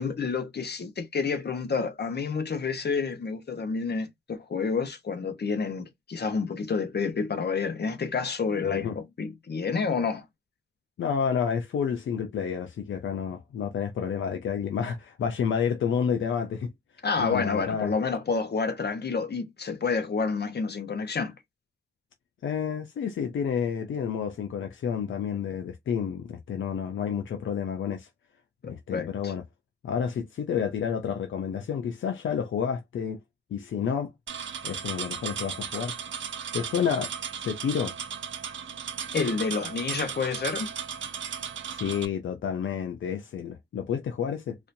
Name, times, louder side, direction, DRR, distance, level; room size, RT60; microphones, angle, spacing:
voice 1, 0.0-10.2 17.0-21.3 28.6-29.3 39.1-40.7, left 5 dB, 60° left, 1.2 m, -29 dB
voice 2, 8.6-9.0 11.0-16.7 17.2-17.9 22.4-28.1 28.6-29.4 29.8-33.2 33.5-34.1 34.6-35.9 36.5-37.9 41.7-44.6, left 7 dB, 85° left, 0.5 m, -30 dB
sound 1, 34.3-42.1, right 7 dB, 85° right, 0.7 m, -36 dB
4.1 x 2.7 x 2.6 m
cardioid pair, 65°, 20 cm